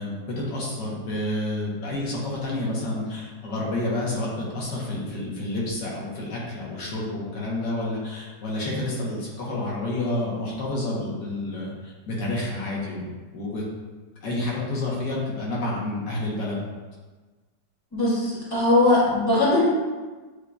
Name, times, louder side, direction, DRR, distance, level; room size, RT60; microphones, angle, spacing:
voice 1, 0.0-13.6 14.2-16.6, left 2 dB, 75° left, -5 dB, 1.6 m, -29 dB
voice 2, 17.9-19.6, left 2 dB, 15° left, -8 dB, 1.4 m, -20 dB
8.0 x 2.7 x 2.3 m, 1.3 s
omnidirectional pair, 1.9 m